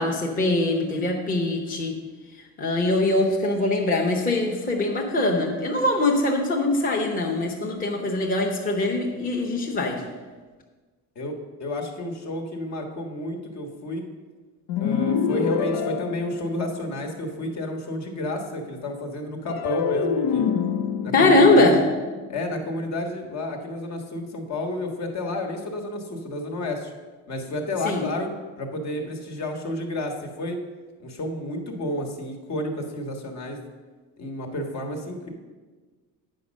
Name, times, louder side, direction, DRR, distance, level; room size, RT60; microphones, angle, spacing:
voice 1, 0.0-2.0 2.6-10.0 21.1-21.8 27.8-28.1, left 2 dB, 25° left, 0 dB, 1.0 m, -22 dB
voice 2, 11.1-14.1 14.8-20.5 21.0-21.7 22.3-26.9 27.3-28.3 28.6-30.6 31.0-33.6 34.2-35.3, left 1 dB, 50° left, 3 dB, 1.5 m, -31 dB
sound 1, 14.7-17.1 19.5-22.8, left 7 dB, 85° left, 0.7 m, -27 dB
8.6 x 5.4 x 6.4 m, 1.4 s
cardioid pair, 135°, 36 cm